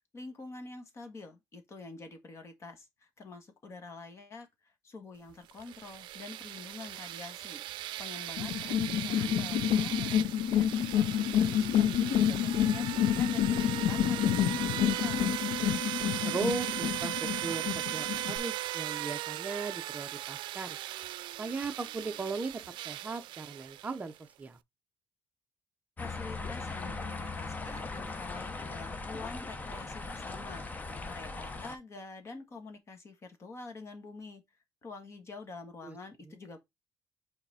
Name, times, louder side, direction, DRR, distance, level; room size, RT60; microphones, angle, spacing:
voice 1, 0.1-10.3 10.5-15.5 26.0-34.4 34.8-36.6, left 3 dB, 35° left, 1.5 m, -47 dB
sound 1, 5.5-24.2, right 15 dB, 85° right, 0.4 m, -38 dB
sound 2, 8.4-18.4, left 10 dB, 85° left, 0.5 m, -29 dB
voice 2, 16.2-17.2 17.4-20.8 21.4-24.1 24.4-24.6 35.8-36.0 36.3-36.4, right 3 dB, 20° right, 0.6 m, -37 dB
sound 3, 26.0-31.7, left 3 dB, 20° left, 0.8 m, -39 dB
5.8 x 4.0 x 4.2 m
cardioid pair, 145°, 8 cm